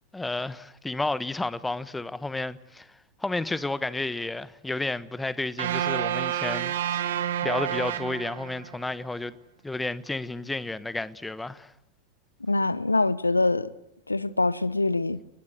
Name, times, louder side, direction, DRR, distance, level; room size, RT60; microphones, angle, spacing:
voice 1, 0.1-9.4 9.6-11.7, left 2 dB, 10° left, 1.2 m, -32 dB
sound 1, 5.6-8.8, right 10 dB, 60° right, 2.3 m, -29 dB
voice 2, 12.5-13.7 14.1-15.2, left 2 dB, 80° left, 0.9 m, -24 dB
30.0 x 21.0 x 8.0 m
figure-of-eight pair, 90°, 0 cm